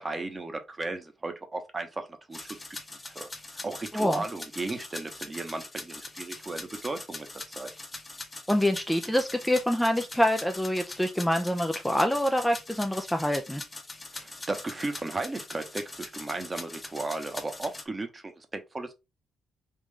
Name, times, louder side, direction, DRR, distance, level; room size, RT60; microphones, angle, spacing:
voice 1, 0.0-2.6 2.9-3.3 3.6-7.3 7.6-7.7 14.1-18.9, right 2 dB, 25° right, 0.9 m, -35 dB
sound 1, 2.3-17.8, left 2 dB, 20° left, 0.8 m, -42 dB
voice 2, 8.5-13.6, left 1 dB, 5° left, 0.4 m, -26 dB
3.7 x 2.5 x 3.2 m
cardioid pair, 90°, 0 cm